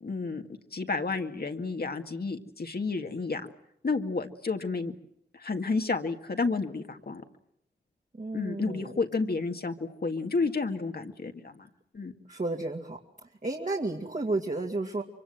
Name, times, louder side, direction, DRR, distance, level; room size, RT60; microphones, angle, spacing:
voice 1, 0.0-0.4 0.7-3.5 3.8-4.9 5.3-7.2 8.3-11.7 11.9-12.1, left 4 dB, 60° left, 5 dB, 2.0 m, -31 dB
voice 2, 8.2-8.9 12.3-13.0 13.4-15.0, right 2 dB, 45° right, 0 dB, 2.6 m, -32 dB
24.5 x 24.0 x 7.8 m, 0.72 s
cardioid pair, 50°, 18 cm